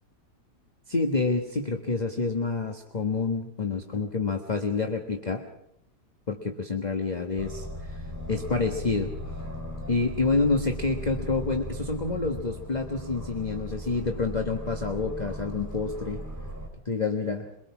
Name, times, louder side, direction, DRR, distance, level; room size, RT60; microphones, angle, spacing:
voice 1, 0.9-5.4 6.3-7.7 8.3-9.1 9.9-16.2 16.8-17.5, left 3 dB, 25° left, 4 dB, 1.4 m, -28 dB
Aircraft, 7.4-16.7, equal, 10° right, 3.6 m, -37 dB
23.5 x 23.0 x 6.1 m, 0.76 s
omnidirectional pair, 1.8 m